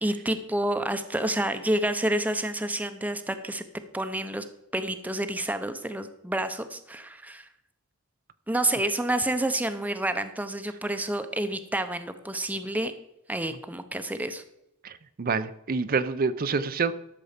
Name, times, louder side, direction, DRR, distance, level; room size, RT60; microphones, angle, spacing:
voice 1, 0.0-3.6 3.9-4.4 4.7-7.5 8.5-12.9 13.3-14.4, right 1 dB, 10° right, 9 dB, 0.7 m, -29 dB
voice 2, 14.8-16.9, right 4 dB, 45° right, 13 dB, 0.5 m, -27 dB
12.5 x 6.9 x 5.1 m, 0.84 s
head